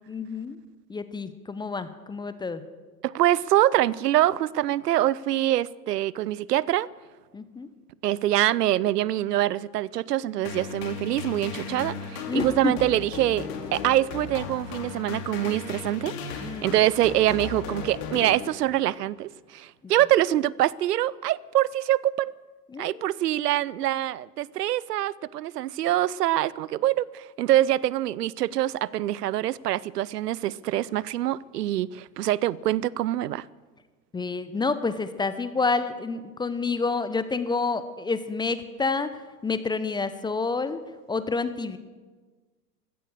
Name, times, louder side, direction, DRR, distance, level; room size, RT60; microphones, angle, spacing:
voice 1, 0.1-0.6 0.9-2.6 7.3-7.7 12.3-12.7 16.4-16.8 22.7-23.0 34.1-39.1 39.4-40.8 41.1-41.8, left 4 dB, 10° left, 0.6 m, -28 dB
voice 2, 3.0-6.9 8.0-16.1 16.6-22.3 22.8-33.5, right 13 dB, 75° right, 0.6 m, -25 dB
sound 1, 10.4-18.9, left 5 dB, 50° left, 2.7 m, -36 dB
15.5 x 13.5 x 6.6 m
hypercardioid pair, 95°, 48 cm